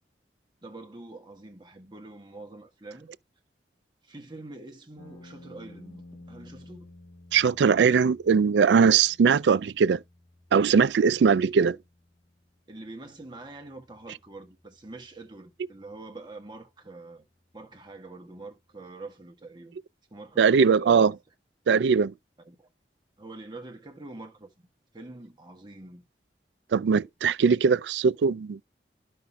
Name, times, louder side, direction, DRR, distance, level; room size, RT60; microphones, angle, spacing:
voice 1, 0.6-3.1 4.0-6.9 12.7-17.2 17.5-19.8 20.1-21.0 22.4-22.7 23.2-24.7 24.9-26.0, right 2 dB, 25° right, 1.5 m, -45 dB
sound 1, 5.0-19.0, left 2 dB, 45° left, 1.3 m, -55 dB
voice 2, 7.3-10.0 10.5-11.8 20.4-21.1 21.7-22.1 26.7-28.6, right 6 dB, 85° right, 0.4 m, -20 dB
13.0 x 5.6 x 2.3 m
head